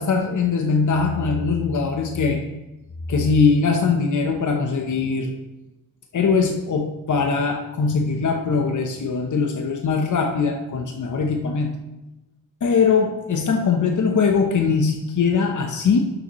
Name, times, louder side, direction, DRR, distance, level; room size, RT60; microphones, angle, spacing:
voice 1, 0.0-2.5 3.1-5.3 6.1-11.7 12.6-16.0, left 5 dB, 60° left, 3 dB, 0.9 m, -21 dB
11.5 x 6.9 x 3.1 m, 1.0 s
wide cardioid pair, 135°, 34 cm